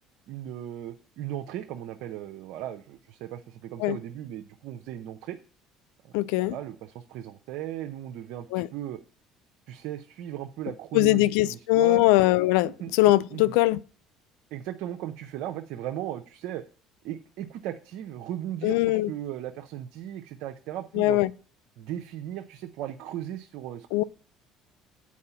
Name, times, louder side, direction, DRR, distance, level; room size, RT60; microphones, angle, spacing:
voice 1, 0.3-5.4 6.0-9.0 9.7-12.1 12.6-12.9 13.3-13.6 14.5-16.6 17.0-21.2 21.8-23.9, right 12 dB, 70° right, 0.6 m, -37 dB
voice 2, 6.1-6.6 8.5-8.7 10.9-13.8 18.6-19.1 21.0-21.3 23.9-24.0, left 18 dB, 85° left, 0.3 m, -21 dB
8.4 x 4.7 x 5.6 m
supercardioid pair, 85°, 0 cm